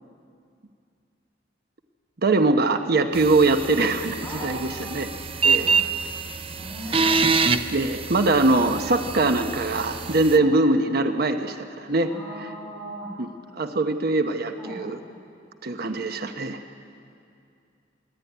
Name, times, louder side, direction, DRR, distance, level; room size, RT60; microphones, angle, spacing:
voice 1, 2.2-4.2 4.4-5.1 5.4-5.7 7.7-12.1 13.2-13.3 13.6-15.0 15.6-16.6, right 2 dB, 55° right, 7 dB, 0.9 m, -22 dB
sound 1, 3.1-10.4, right 4 dB, 30° right, 0.6 m, -26 dB
voice 2, 4.2-5.0 5.6-5.8 6.5-7.3 10.3-10.5 12.0-13.1 14.6-14.9 15.8-16.0, right 1 dB, 10° left, -7 dB, 3.9 m, -39 dB
27.0 x 11.5 x 9.2 m, 2.4 s
head